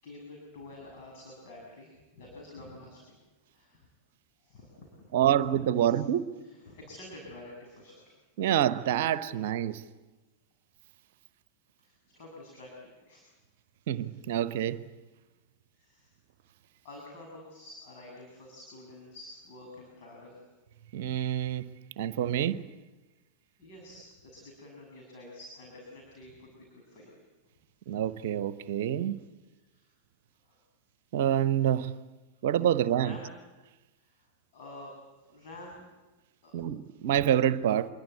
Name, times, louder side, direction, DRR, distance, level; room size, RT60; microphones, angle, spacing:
voice 1, 0.0-3.2 3.5-3.9 4.4-5.2 5.8-6.0 6.4-8.1 11.8-13.3 15.8-16.1 16.8-20.4 23.6-27.2 27.8-28.0 29.6-29.9 30.4-30.6 33.0-33.3 34.0-34.3 34.5-34.9 35.3-35.8 36.4-36.5, left 1 dB, 45° left, 7.5 m, -49 dB
voice 2, 5.1-6.3 8.4-9.8 13.9-14.8 20.9-21.7 22.0-22.6 27.9-29.2 31.1-31.9 32.4-33.2 36.5-37.9, right 10 dB, 55° right, 1.0 m, -27 dB
27.0 x 23.0 x 8.3 m
figure-of-eight pair, 90°, 0 cm